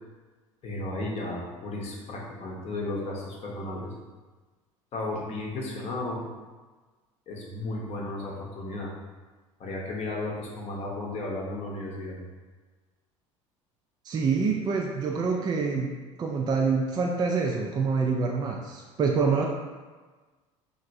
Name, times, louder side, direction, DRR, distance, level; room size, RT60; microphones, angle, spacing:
voice 1, 0.6-3.9 4.9-6.3 7.3-8.9 9.6-12.2, left 2 dB, 40° left, -2 dB, 0.7 m, -34 dB
voice 2, 14.1-15.9 16.2-19.5, right 5 dB, 25° right, 1 dB, 0.3 m, -26 dB
2.9 x 2.5 x 2.6 m, 1.3 s
figure-of-eight pair, 65°, 17 cm